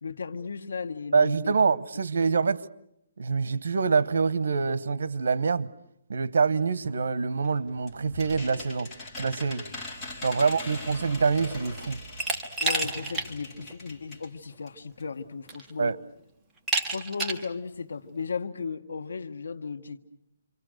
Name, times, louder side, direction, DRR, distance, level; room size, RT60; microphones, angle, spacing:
voice 1, 0.0-1.6 2.2-2.3 10.4-10.5 12.6-15.9 16.9-20.0, left 5 dB, 85° left, 1.6 m, -35 dB
voice 2, 1.1-2.6 3.2-5.7 6.1-8.9 9.2-9.7 10.2-12.0 15.8-16.0, right 5 dB, 70° right, 1.0 m, -25 dB
sound 1, 7.4-14.3 14.7-14.8 15.0-15.1, left 1 dB, 15° left, 2.7 m, -41 dB
Glass, 12.2-13.3 13.7-13.8 14.9-15.0 15.5-15.9 16.7-17.5, right 3 dB, 5° right, 1.4 m, -29 dB
sound 2, 12.8-15.4 15.7-15.8, right 2 dB, 25° right, 5.3 m, -51 dB
28.5 x 25.0 x 6.6 m
hypercardioid pair, 165°, 0 cm